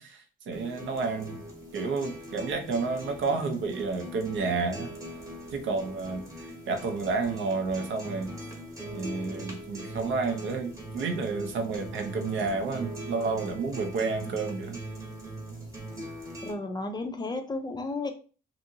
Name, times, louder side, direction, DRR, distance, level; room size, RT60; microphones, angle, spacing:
voice 1, 0.0-1.4 1.7-4.9 5.5-6.2 6.7-8.3 8.9-14.8, right 4 dB, 75° right, 5 dB, 0.6 m, -30 dB
sound 1, 0.5-16.5, right 1 dB, 15° right, 1.0 m, -41 dB
voice 2, 16.4-18.1, left 2 dB, 20° left, 6 dB, 0.4 m, -33 dB
2.6 x 2.5 x 2.7 m, 0.37 s
cardioid pair, 90°, 20 cm